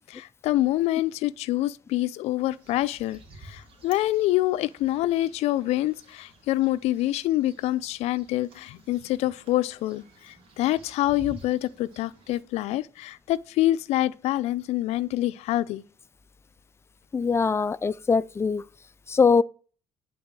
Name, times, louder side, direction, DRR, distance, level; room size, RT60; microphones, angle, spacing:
voice 1, 0.1-15.8, left 15 dB, 75° left, 0.5 m, -26 dB
sound 1, 2.4-12.4, right 3 dB, 55° right, 2.7 m, -51 dB
voice 2, 17.1-18.6 19.1-19.4, left 5 dB, 25° left, 0.4 m, -22 dB
10.0 x 4.2 x 6.1 m
supercardioid pair, 80°, 11 cm